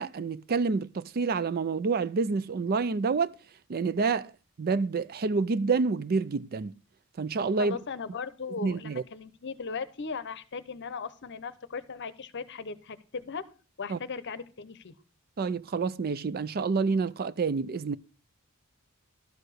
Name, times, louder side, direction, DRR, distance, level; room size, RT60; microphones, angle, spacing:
voice 1, 0.0-3.3 3.7-4.3 4.6-6.8 7.2-7.8 8.6-9.0 13.9-14.0 15.4-18.0, right 4 dB, 45° right, 0.4 m, -28 dB
voice 2, 7.6-13.5 13.8-14.9, left 5 dB, 55° left, 0.7 m, -38 dB
12.5 x 4.8 x 6.4 m
head